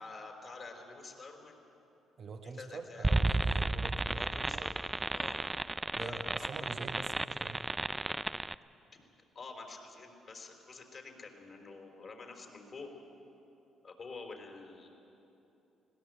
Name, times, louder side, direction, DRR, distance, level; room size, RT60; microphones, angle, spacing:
voice 1, 0.0-1.6 2.4-3.1 4.0-5.4 6.0-6.7 9.3-12.9 13.8-14.9, left 3 dB, 45° left, 3 dB, 4.1 m, -48 dB
voice 2, 2.2-4.7 5.9-7.6, right 4 dB, 55° right, 6 dB, 1.2 m, -45 dB
sound 1, 3.0-8.5, right 2 dB, 15° right, 0.5 m, -33 dB
20.5 x 17.0 x 7.7 m, 3.0 s
supercardioid pair, 60°, 0 cm